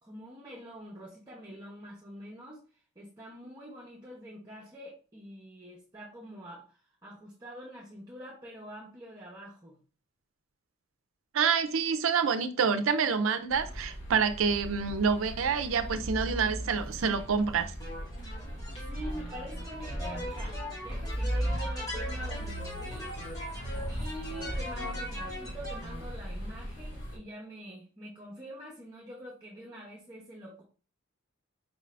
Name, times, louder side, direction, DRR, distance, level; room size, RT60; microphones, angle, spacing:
voice 1, 0.0-9.8 18.9-23.1 23.9-30.6, equal, 20° right, 0.7 m, -45 dB
voice 2, 11.3-17.7, right 6 dB, 80° right, 0.5 m, -27 dB
sound 1, 13.5-27.2, right 1 dB, 65° left, 1.7 m, -38 dB
sound 2, 17.8-26.0, equal, 20° left, 1.1 m, -39 dB
4.8 x 2.6 x 3.2 m
head